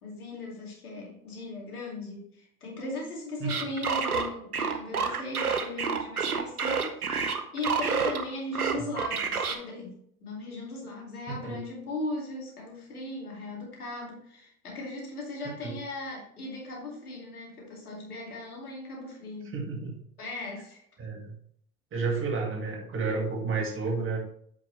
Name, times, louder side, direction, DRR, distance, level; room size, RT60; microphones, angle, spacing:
voice 1, 0.0-19.5 20.2-20.8, left 2 dB, 80° left, -2 dB, 2.5 m, -38 dB
sound 1, 3.5-8.2 8.5-9.6, right 5 dB, 90° right, 0.8 m, -28 dB
voice 2, 19.5-20.0 21.0-21.4 21.9-24.2, right 4 dB, 30° right, 1 dB, 1.9 m, -31 dB
8.5 x 5.3 x 3.3 m, 0.66 s
figure-of-eight pair, 80°, 43 cm